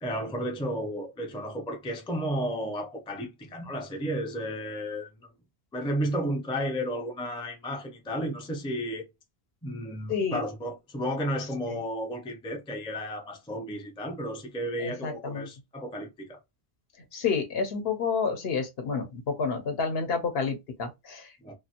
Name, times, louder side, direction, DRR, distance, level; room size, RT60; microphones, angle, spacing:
voice 1, 0.0-5.3 5.7-9.1 9.6-16.4 21.4-21.5, equal, 10° left, 0.3 m, -33 dB
voice 2, 10.1-10.4 14.8-15.5 17.1-21.3, left 5 dB, 70° left, 1.0 m, -29 dB
2.5 x 2.3 x 2.7 m
omnidirectional pair, 1.1 m